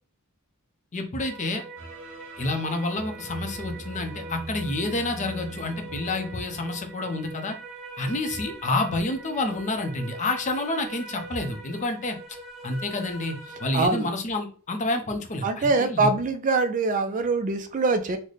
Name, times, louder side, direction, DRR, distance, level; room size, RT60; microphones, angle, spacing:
voice 1, 0.9-1.6 2.4-7.6 8.0-12.2 12.6-16.1, left 2 dB, 35° left, 0.5 m, -29 dB
sound 1, 1.2-13.9, right 3 dB, ahead, 0.8 m, -42 dB
sound 2, 1.8-7.5, right 1 dB, 60° right, 0.9 m, -41 dB
voice 2, 13.7-14.1 15.4-18.2, right 3 dB, 35° right, 0.3 m, -23 dB
3.9 x 2.1 x 3.2 m
head